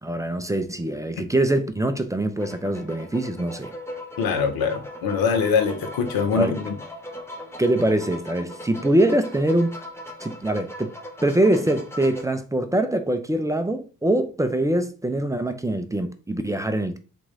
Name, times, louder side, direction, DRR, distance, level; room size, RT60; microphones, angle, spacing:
voice 1, 0.0-3.7 6.4-6.6 7.6-9.8 10.2-10.9 11.2-17.0, right 1 dB, 10° right, 0.5 m, -23 dB
sound 1, 2.3-12.2, left 1 dB, 5° left, 0.9 m, -39 dB
voice 2, 4.2-6.7, left 5 dB, 65° left, 0.8 m, -23 dB
3.5 x 2.9 x 2.7 m
hypercardioid pair, 40°, 38 cm